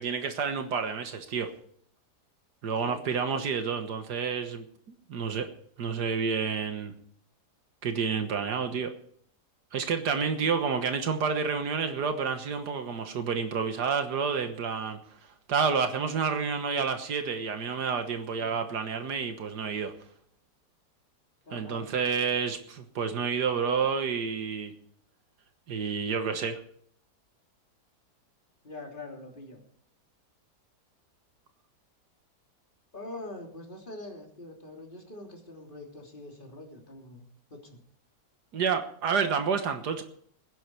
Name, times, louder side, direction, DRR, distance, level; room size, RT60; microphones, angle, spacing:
voice 1, 0.0-1.5 2.6-4.7 5.1-5.5 5.8-6.9 7.8-8.9 9.7-19.9 21.5-24.7 25.7-26.6 38.5-40.0, right 6 dB, 80° right, 7 dB, 1.9 m, -29 dB
voice 2, 21.4-21.9 28.6-29.6 32.9-37.8, left 2 dB, 30° left, 1 dB, 3.3 m, -44 dB
20.0 x 10.0 x 4.6 m, 0.62 s
omnidirectional pair, 1.8 m